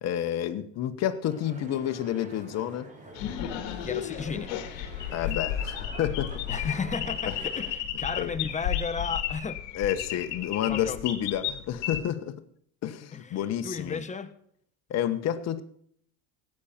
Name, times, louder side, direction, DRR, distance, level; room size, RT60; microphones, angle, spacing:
voice 1, 0.0-2.9 5.1-6.3 6.6-6.7 7.3-7.4 8.2-8.3 9.7-12.4 12.8-14.0 14.9-15.6, left 11 dB, 50° left, 1.4 m, -30 dB
sound 1, 1.3-7.7, right 1 dB, 25° right, 4.3 m, -47 dB
sound 2, 3.1-12.0, left 10 dB, 75° left, 2.0 m, -33 dB
voice 2, 3.8-4.5 6.5-9.6 10.6-11.0 13.1-14.3, left 5 dB, 20° left, 1.4 m, -34 dB
18.5 x 8.8 x 4.4 m
supercardioid pair, 100°, 32 cm